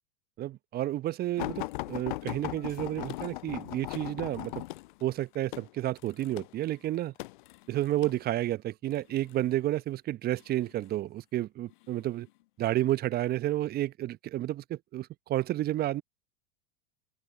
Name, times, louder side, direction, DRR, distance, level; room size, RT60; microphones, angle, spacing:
voice 1, 0.4-4.6 5.0-7.1 7.7-12.3 12.6-16.0, right 14 dB, 30° right, 1.1 m, -31 dB
sound 1, 1.4-8.2 8.9-9.4 10.3-11.0 11.7-11.9 12.3-12.4, left 19 dB, 55° left, 0.4 m, -38 dB
open air
figure-of-eight pair, 90°, 30 cm